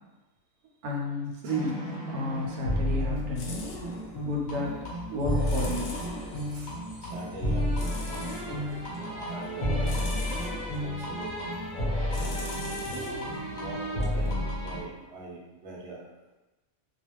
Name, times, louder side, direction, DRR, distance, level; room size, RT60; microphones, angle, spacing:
voice 1, 0.8-3.7 4.3-4.7 5.1-6.0, left 1 dB, 85° right, -1 dB, 1.1 m, -32 dB
Waltz of the doomed, 1.5-14.8, equal, 40° left, 0.8 m, -31 dB
sound 1, 2.4-15.1, left 2 dB, 70° left, 0.9 m, -43 dB
voice 2, 7.0-10.1 10.8-11.8 12.2-12.6 13.5-16.1, right 2 dB, 60° right, -3 dB, 0.9 m, -43 dB
2.4 x 2.3 x 3.0 m, 1.1 s
omnidirectional pair, 1.5 m